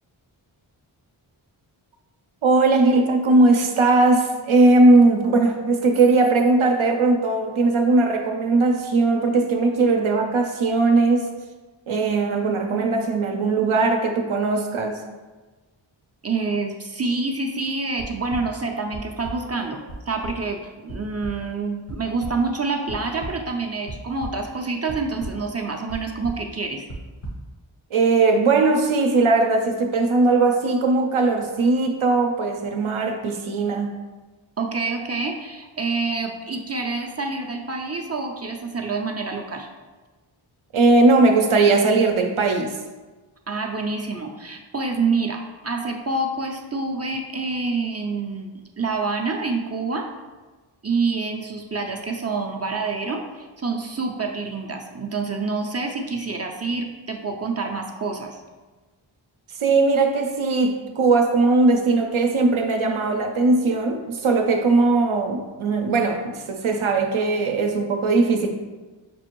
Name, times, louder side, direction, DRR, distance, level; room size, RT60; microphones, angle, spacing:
voice 1, 2.4-11.3 11.9-15.0 27.9-34.0 40.7-42.8 59.6-68.5, right 3 dB, 75° right, 4 dB, 0.6 m, -19 dB
voice 2, 16.2-26.9 34.6-39.7 43.5-50.1 50.8-58.4, right 3 dB, 30° right, 2 dB, 0.5 m, -27 dB
sound 1, 18.0-18.4 18.9-19.3 19.9-20.0 20.2-20.3 20.9-21.0 21.2-21.3 21.9-22.3 22.9-23.3 23.9-24.4 24.9-25.3 25.9-26.0 26.2-26.4 26.9-27.3, right 2 dB, 80° left, 1.4 m, -33 dB
6.1 x 2.5 x 3.0 m, 1.2 s
wide cardioid pair, 45°, 49 cm